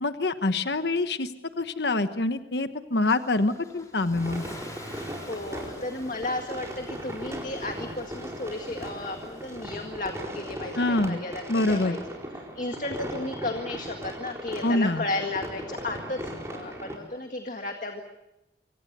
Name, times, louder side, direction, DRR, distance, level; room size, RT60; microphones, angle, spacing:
voice 1, 0.0-1.3 1.6-4.4 10.8-11.2 11.5-12.0 14.6-15.0, left 2 dB, 75° left, 9 dB, 1.2 m, -25 dB
Car / Engine starting / Accelerating revving vroom, 3.1-10.2, left 1 dB, 20° left, 2.9 m, -48 dB
sound 1, 4.1-17.0, equal, 15° right, 4.6 m, -38 dB
voice 2, 4.9-12.0 12.3-18.0, left 2 dB, 45° left, 4 dB, 2.0 m, -34 dB
27.0 x 25.0 x 6.8 m, 0.89 s
head